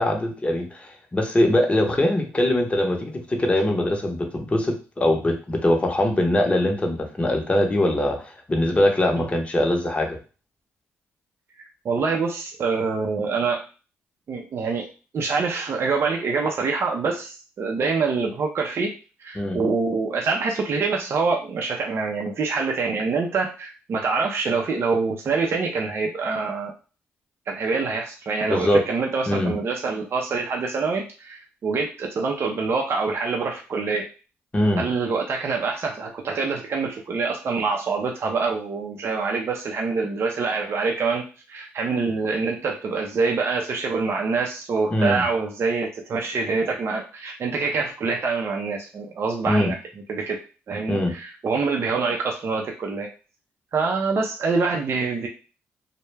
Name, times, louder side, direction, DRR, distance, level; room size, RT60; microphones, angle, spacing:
voice 1, 0.0-10.2 19.3-19.6 28.5-28.8 29.3-29.5 34.5-34.8 44.9-45.2 49.5-49.7 50.9-51.1, left 1 dB, 25° left, 2 dB, 0.7 m, -22 dB
voice 2, 11.8-13.6 14.3-14.8 15.1-18.9 19.2-26.7 27.5-34.0 34.8-49.8 50.1-50.4 50.7-53.1 53.7-55.3, right 4 dB, 55° right, 1 dB, 0.5 m, -25 dB
2.2 x 2.1 x 3.2 m, 0.34 s
cardioid pair, 70°, 5 cm